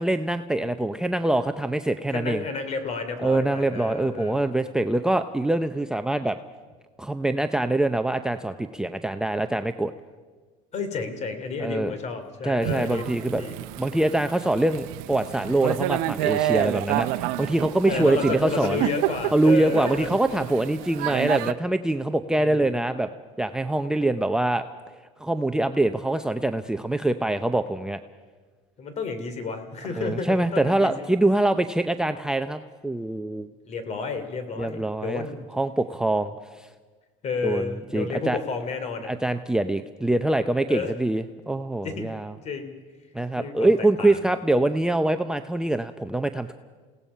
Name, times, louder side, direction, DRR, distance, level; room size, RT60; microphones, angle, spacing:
voice 1, 0.0-2.4 3.2-6.4 7.0-9.9 11.6-11.9 12.4-13.4 13.8-18.8 19.3-23.1 23.4-24.6 25.2-28.0 29.9-33.5 34.6-35.3 35.5-36.7 37.4-37.6 37.9-38.4 39.0-42.3 43.1-46.5, right 2 dB, 5° right, 8 dB, 0.6 m, -24 dB
voice 2, 2.1-4.5 10.7-13.1 13.4-13.6 17.9-20.1 22.3-22.8 28.8-31.2 33.7-35.4 37.2-39.1 40.7-40.9 41.8-42.1 42.4-42.7 43.4-43.7 44.0-44.2, left 4 dB, 40° left, 8 dB, 3.1 m, -31 dB
Thunder / Rain, 12.6-21.5, right 15 dB, 70° right, 0.8 m, -29 dB
28.5 x 17.5 x 5.6 m, 1.4 s
supercardioid pair, 115°, 17 cm